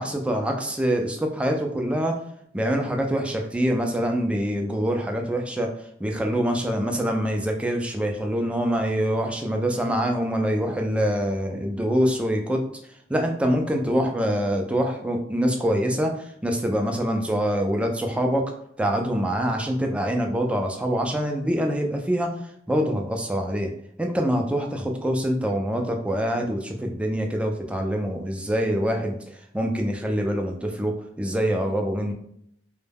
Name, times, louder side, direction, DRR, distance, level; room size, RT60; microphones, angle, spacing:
voice 1, 0.0-2.1 2.5-5.7 6.0-12.6 13.1-18.5 18.8-22.3 22.7-23.7 24.0-32.1, equal, 5° right, 2 dB, 0.3 m, -25 dB
2.2 x 2.1 x 3.3 m, 0.69 s
head